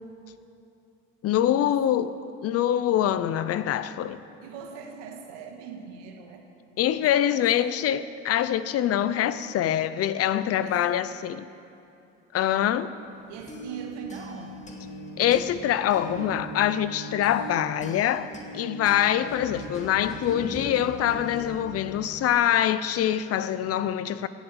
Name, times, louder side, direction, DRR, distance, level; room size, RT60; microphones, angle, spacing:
voice 1, 1.2-2.1 2.4-4.2 6.8-11.4 12.3-12.9 15.2-24.3, left 11 dB, 50° left, 0.7 m, -24 dB
voice 2, 4.4-6.4 7.0-7.7 10.6-11.1 13.3-14.7, right 6 dB, 85° right, 1.9 m, -42 dB
sound 1, 13.1-22.8, right 1 dB, 25° left, 2.3 m, -40 dB
16.0 x 8.2 x 7.8 m
supercardioid pair, 85°, 30 cm